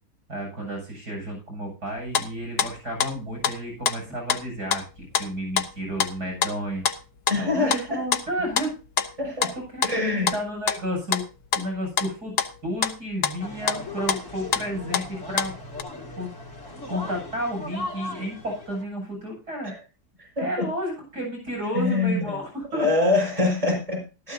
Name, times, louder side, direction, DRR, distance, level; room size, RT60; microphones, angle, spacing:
voice 1, 0.3-6.9 7.4-8.7 9.5-11.2 11.5-12.3 12.6-15.5 16.2-16.3 16.9-19.7 20.4-22.9, equal, 75° right, 1 dB, 8.0 m, -32 dB
sound 1, 1.9-3.6 3.9-4.0 4.3-4.4 4.7-5.3 5.6-15.8, left 8 dB, 70° left, 1.5 m, -27 dB
voice 2, 7.3-8.0 9.2-9.5 9.8-10.3 19.6-19.8 20.4-20.5 21.7-22.4 22.7-24.3, left 3 dB, 20° right, 1 dB, 5.5 m, -24 dB
sound 2, 13.4-18.8, left 2 dB, 50° left, 3.1 m, -37 dB
15.0 x 13.5 x 2.8 m, 0.32 s
omnidirectional pair, 1.7 m